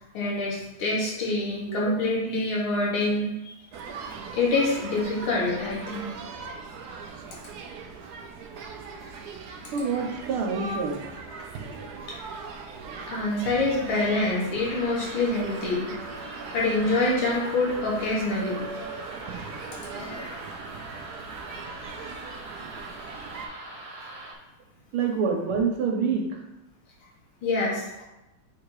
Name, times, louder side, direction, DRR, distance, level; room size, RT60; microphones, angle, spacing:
voice 1, 0.1-3.6 4.3-6.1 12.0-12.3 13.1-15.9 16.3-18.6 19.9-20.4 27.4-27.9, left 2 dB, 75° left, -4 dB, 2.4 m, -26 dB
sound 1, 3.7-23.5, right 4 dB, 65° right, 1.0 m, -39 dB
voice 2, 9.7-11.1 24.9-26.4, right 5 dB, 85° right, 2 dB, 1.9 m, -27 dB
sound 2, 14.6-24.3, right 2 dB, 50° right, 0.4 m, -42 dB
8.0 x 2.9 x 4.8 m, 0.95 s
omnidirectional pair, 2.3 m